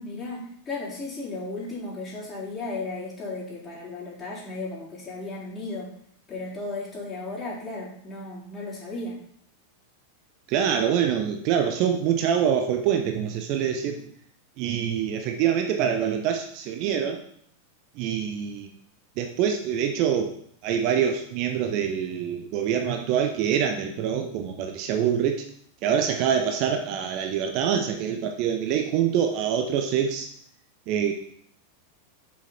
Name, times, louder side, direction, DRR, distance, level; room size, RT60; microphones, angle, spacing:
voice 1, 0.0-5.9 6.3-9.2, left 2 dB, 25° left, -7 dB, 3.9 m, -35 dB
voice 2, 10.5-14.1 14.6-17.2 18.0-18.7 19.2-20.3 20.6-25.5 25.8-30.3 30.9-31.1, right 8 dB, 40° right, 5 dB, 0.8 m, -25 dB
7.3 x 6.5 x 4.3 m, 0.65 s
figure-of-eight pair, 90°, 0 cm